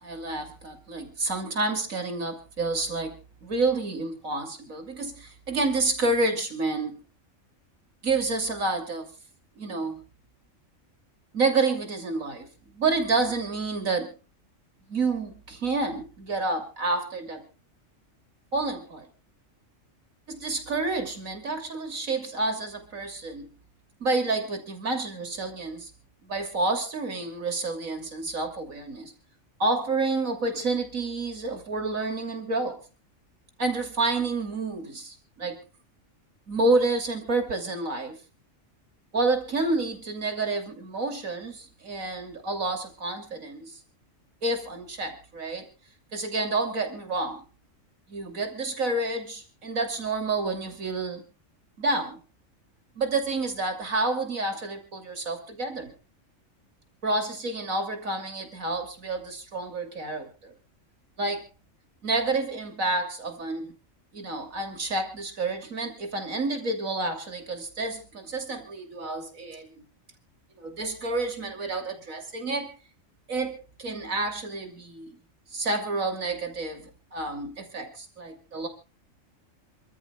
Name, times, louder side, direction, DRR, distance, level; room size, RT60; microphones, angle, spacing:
voice 1, 0.0-3.1 3.4-7.0 8.0-9.1 9.6-10.0 11.3-14.1 14.9-17.4 18.5-19.0 20.3-23.5 24.0-25.9 26.2-29.1 29.6-32.8 33.6-35.6 36.5-38.2 39.1-43.7 44.4-45.7 46.1-47.4 48.1-51.2 51.8-52.2 53.0-55.9 57.0-60.5 61.2-61.5 62.0-63.7 64.1-69.7 70.6-72.7 73.3-75.2 75.5-78.7, right 3 dB, 85° right, 5 dB, 3.3 m, -29 dB
28.0 x 13.0 x 2.3 m, 0.31 s
omnidirectional pair, 1.4 m